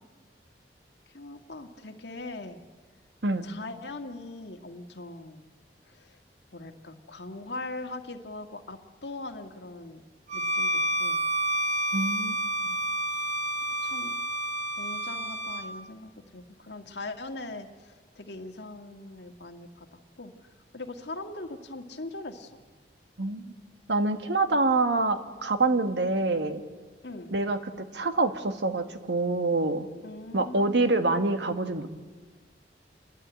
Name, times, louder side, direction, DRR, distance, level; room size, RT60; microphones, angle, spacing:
voice 1, 1.1-2.6 3.4-5.5 5.9-6.2 6.5-10.0 10.3-11.2 13.8-14.1 14.8-20.3 20.7-22.6 27.0-27.3 30.0-31.0, left 2 dB, 75° left, 5 dB, 1.8 m, -41 dB
Bowed string instrument, 10.3-15.7, right 1 dB, 45° right, 1.8 m, -29 dB
voice 2, 11.9-12.4 23.2-23.5 23.9-26.6 27.3-29.9 30.3-31.9, right 2 dB, 80° right, 8 dB, 1.5 m, -26 dB
29.5 x 11.5 x 9.0 m, 1.4 s
head